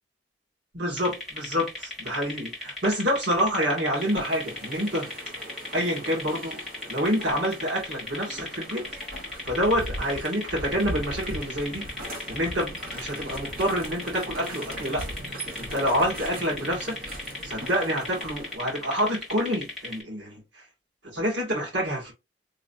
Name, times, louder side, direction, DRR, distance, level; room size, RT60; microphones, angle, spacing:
voice 1, 0.7-5.1 5.7-6.6 6.9-8.9 9.4-11.9 12.3-15.0 15.6-17.0 17.4-20.4 21.0-22.1, equal, 90° right, 2.2 m, -27 dB
sound 1, 1.0-20.0, left 2 dB, ahead, 1.5 m, -37 dB
sound 2, 4.0-18.6, equal, 50° right, 1.1 m, -39 dB
3.8 x 2.9 x 2.6 m
head